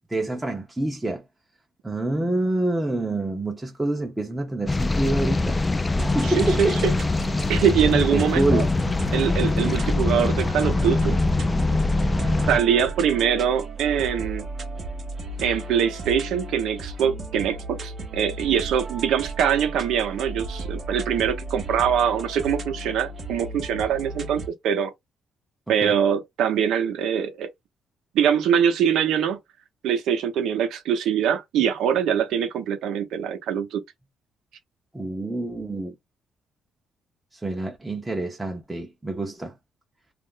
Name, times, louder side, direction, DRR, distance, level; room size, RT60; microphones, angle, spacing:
voice 1, 0.1-1.2 1.8-5.6 6.1-7.0 8.1-8.7 25.7-26.0 34.9-35.9 37.3-39.5, right 2 dB, 10° right, 0.7 m, -27 dB
sound 1, 4.7-12.6, left 2 dB, 20° left, 0.4 m, -23 dB
sound 2, 6.0-24.5, right 2 dB, 45° right, 0.7 m, -35 dB
voice 2, 6.2-6.9 7.5-8.6 9.1-11.2 12.5-14.5 15.4-24.9 25.7-27.5 28.1-29.4 29.8-33.8, right 8 dB, 80° right, 0.7 m, -23 dB
2.4 x 2.0 x 3.7 m
cardioid pair, 90°, 0 cm